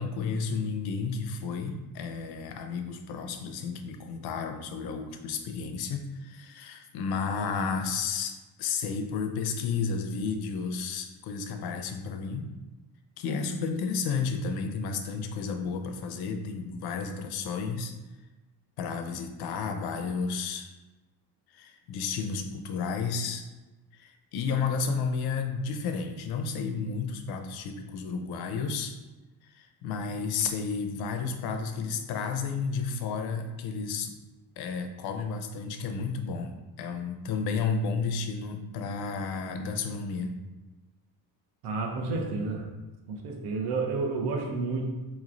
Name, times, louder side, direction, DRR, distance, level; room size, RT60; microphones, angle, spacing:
voice 1, 0.0-12.5 13.2-18.0 18.8-20.7 21.5-23.5 23.9-29.0 29.4-34.1 34.6-40.3, left 5 dB, 75° left, 6 dB, 0.6 m, -32 dB
voice 2, 41.6-42.6 43.1-44.9, right 3 dB, 85° right, 2 dB, 0.9 m, -30 dB
4.4 x 3.1 x 2.5 m, 1.1 s
cardioid pair, 150°, 38 cm